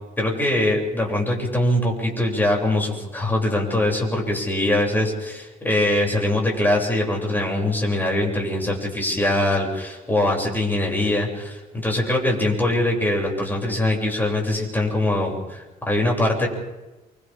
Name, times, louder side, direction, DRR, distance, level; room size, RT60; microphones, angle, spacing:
voice 1, 0.2-16.5, left 1 dB, 10° left, -1 dB, 7.8 m, -22 dB
29.0 x 25.0 x 3.8 m, 1.1 s
cardioid pair, 110°, 17 cm